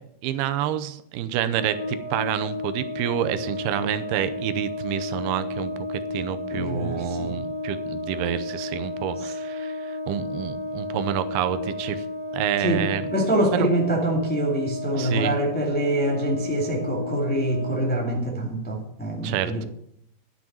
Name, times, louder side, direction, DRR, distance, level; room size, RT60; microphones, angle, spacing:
voice 1, 0.2-12.1 12.3-13.1 13.5-13.7 14.9-15.4 19.2-19.7, right 11 dB, 85° right, 11 dB, 2.7 m, -28 dB
Brass instrument, 1.5-17.9, left 2 dB, 35° left, 2.0 m, -32 dB
voice 2, 6.5-7.4 9.2-9.3 12.6-12.8 13.1-19.6, right 1 dB, 10° left, -1 dB, 0.5 m, -25 dB
11.0 x 6.1 x 8.7 m, 0.74 s
omnidirectional pair, 4.5 m